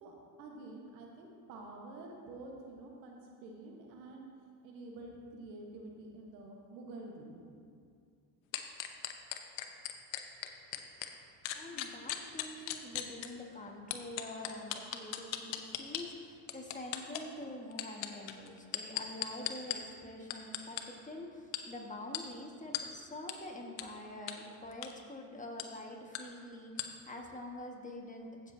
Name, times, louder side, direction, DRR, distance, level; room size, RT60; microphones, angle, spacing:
voice 1, 0.0-4.2 4.6-7.3, right 2 dB, 90° right, 0 dB, 1.4 m, -48 dB
sound 1, 8.5-11.1 11.4-13.3 13.9-16.0 16.5-17.2 17.7-19.8 20.3-20.8 21.5-21.6 22.1-22.2 22.7-22.8 23.3-23.4 23.8-23.9 24.3-24.4 24.7-24.9 25.6-25.7 26.1-26.2 26.8-26.9, left 14 dB, 65° left, 0.9 m, -37 dB
voice 2, 11.5-28.5, left 1 dB, 15° left, 0 dB, 1.6 m, -46 dB
15.0 x 6.9 x 2.8 m, 2.3 s
hypercardioid pair, 70°, 49 cm